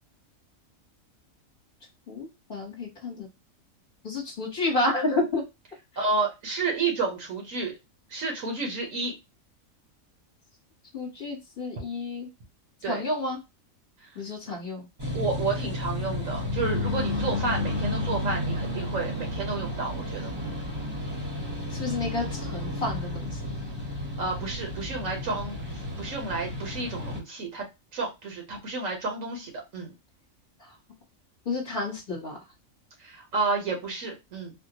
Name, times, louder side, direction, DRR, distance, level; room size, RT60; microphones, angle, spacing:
voice 1, 2.1-3.3 4.0-5.4 10.9-12.3 12.9-13.4 14.1-14.9 21.7-23.4 31.4-32.4, left 2 dB, 40° left, -3 dB, 1.3 m, -30 dB
voice 2, 6.0-7.8 8.1-9.1 12.8-13.0 14.4-14.5 15.1-20.5 24.2-27.6 27.9-29.9 33.0-34.5, right 3 dB, 75° right, 1 dB, 1.5 m, -31 dB
sound 1, 15.0-27.2, left 1 dB, 20° right, 0.9 m, -32 dB
4.0 x 2.2 x 2.9 m, 0.23 s
omnidirectional pair, 1.4 m